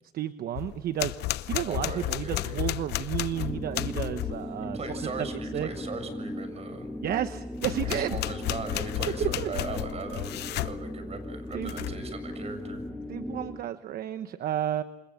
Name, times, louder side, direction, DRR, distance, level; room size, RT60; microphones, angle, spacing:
voice 1, 0.1-1.2 1.5-5.7 7.0-8.2 9.2-9.5 11.5-11.9 13.1-14.8, right 11 dB, 60° right, 10 dB, 1.1 m, -32 dB
sound 1, 0.6-4.4 7.6-10.8 11.5-12.1, left 16 dB, 80° left, 0.9 m, -32 dB
voice 2, 1.6-2.8 4.7-6.9 7.8-12.8, right 3 dB, 40° right, 10 dB, 7.2 m, -38 dB
sound 2, 3.3-13.7, left 1 dB, 10° left, 2.0 m, -38 dB
28.5 x 26.0 x 7.3 m, 0.93 s
cardioid pair, 110°, 17 cm